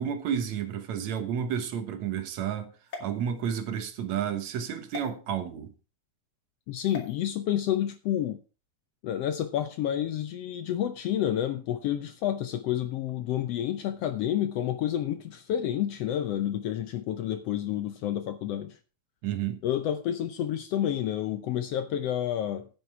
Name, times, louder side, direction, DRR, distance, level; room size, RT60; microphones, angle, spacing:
voice 1, 0.0-2.7 3.0-5.7 19.2-19.6, right 8 dB, 70° right, 2.4 m, -31 dB
sound 1, 2.9-3.9 4.9-5.1 6.9-7.1, left 4 dB, 45° left, 3.1 m, -42 dB
voice 2, 6.7-8.4 9.0-18.8 19.6-22.7, left 11 dB, 70° left, 1.6 m, -29 dB
9.3 x 9.3 x 4.8 m
omnidirectional pair, 3.4 m